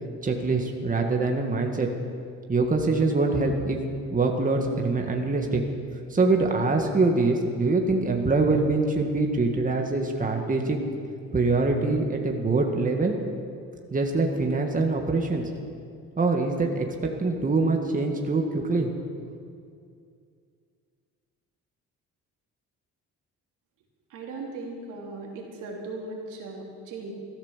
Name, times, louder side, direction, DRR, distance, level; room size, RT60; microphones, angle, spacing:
voice 1, 0.2-1.9 2.5-3.8 4.1-5.6 6.1-10.8 11.3-13.1 13.9-15.4 16.2-16.9 17.2-18.9, right 3 dB, 25° right, 2 dB, 1.9 m, -24 dB
voice 2, 24.1-27.1, right 3 dB, 80° right, -1 dB, 3.3 m, -38 dB
14.0 x 13.0 x 7.4 m, 2.3 s
cardioid pair, 85°, 31 cm